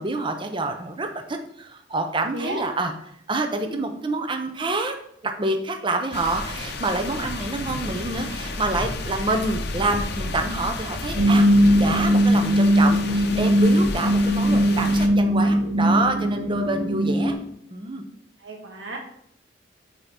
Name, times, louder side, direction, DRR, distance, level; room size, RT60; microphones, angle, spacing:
voice 1, 0.0-2.9 3.3-4.9 5.2-17.4 17.7-18.1, right 2 dB, 25° right, 6 dB, 0.6 m, -27 dB
voice 2, 2.3-2.7 3.6-3.8 18.4-19.0, right 1 dB, 75° right, 1 dB, 1.4 m, -33 dB
sound 1, 6.1-15.1, left 3 dB, 60° left, 0.6 m, -32 dB
sound 2, 11.1-17.3, equal, 60° right, 1.5 m, -19 dB
5.6 x 4.3 x 4.2 m, 0.69 s
head